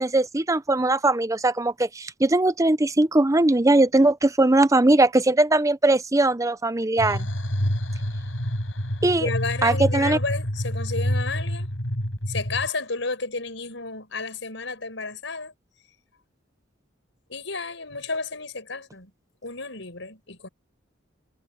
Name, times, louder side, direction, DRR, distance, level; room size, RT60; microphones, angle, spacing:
voice 1, 0.0-7.3 9.0-9.3 9.6-10.2, right 2 dB, 15° right, 0.7 m, -20 dB
sound 1, 7.0-12.7, equal, 85° left, 6.8 m, -27 dB
voice 2, 9.2-11.7 12.3-15.5 17.3-19.1 19.4-20.5, left 3 dB, 70° left, 6.5 m, -32 dB
head